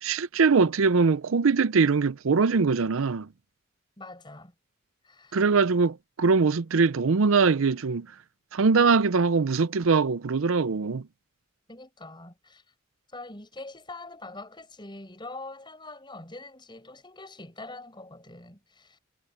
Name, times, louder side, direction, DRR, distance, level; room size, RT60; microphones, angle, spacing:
voice 1, 0.0-3.3 5.3-8.1 8.5-11.0, right 4 dB, 70° right, 0.6 m, -22 dB
voice 2, 4.0-4.5 5.0-5.4 11.7-12.6 13.1-19.0, left 2 dB, 20° left, 7.7 m, -44 dB
head